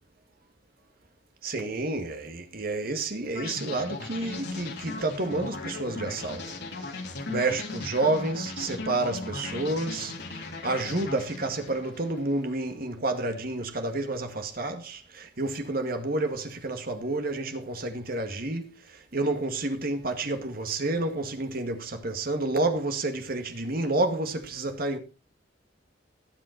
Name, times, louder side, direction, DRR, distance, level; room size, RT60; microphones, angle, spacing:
voice 1, 1.4-6.5 6.9-7.0 7.3-25.0, right 2 dB, 55° right, 2.1 m, -30 dB
sound 1, 3.3-12.4, left 3 dB, 65° left, 3.3 m, -37 dB
18.0 x 7.5 x 4.2 m
head